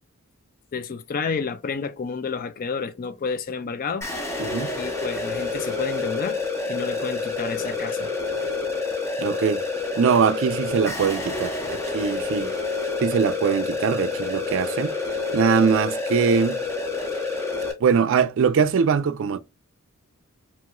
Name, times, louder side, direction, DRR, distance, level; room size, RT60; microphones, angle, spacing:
voice 1, 0.7-4.1 4.8-8.1, left 5 dB, 40° left, 0.4 m, -30 dB
sound 1, 4.0-17.7, left 3 dB, 10° left, 0.7 m, -28 dB
voice 2, 4.4-4.7 9.2-9.6 10.0-12.5 13.0-14.9 15.3-16.6 17.8-19.4, right 6 dB, 60° right, 0.4 m, -22 dB
3.0 x 2.9 x 2.3 m
head